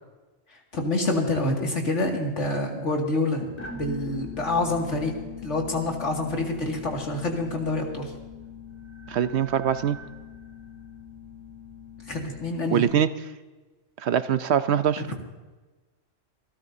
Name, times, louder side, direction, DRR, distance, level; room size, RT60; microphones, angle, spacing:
voice 1, 0.7-5.1 5.4-8.1 12.1-12.9, left 2 dB, 70° left, 0 dB, 2.5 m, -27 dB
sound 1, 3.6-12.8, left 5 dB, 35° left, 1.7 m, -41 dB
voice 2, 9.1-10.0 12.7-13.1 14.0-15.0, right 9 dB, 65° right, 12 dB, 0.8 m, -23 dB
27.0 x 13.0 x 2.7 m, 1.2 s
omnidirectional pair, 1.3 m